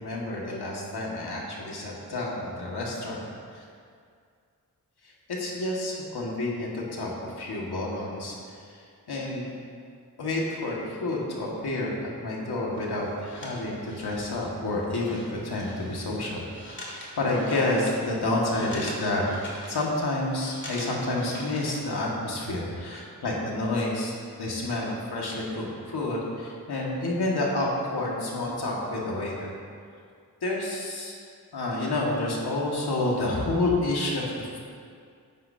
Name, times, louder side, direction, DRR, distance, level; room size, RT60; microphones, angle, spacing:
voice 1, 0.0-3.3 3.5-3.6 5.3-8.6 9.1-9.5 10.2-19.2 19.7-29.5 30.4-31.1 31.5-34.6, left 2 dB, 85° left, -3 dB, 2.1 m, -29 dB
sound 1, 12.7-22.0, left 1 dB, 30° left, 2.5 m, -43 dB
13.0 x 9.9 x 2.9 m, 2.2 s
cardioid pair, 60°, 38 cm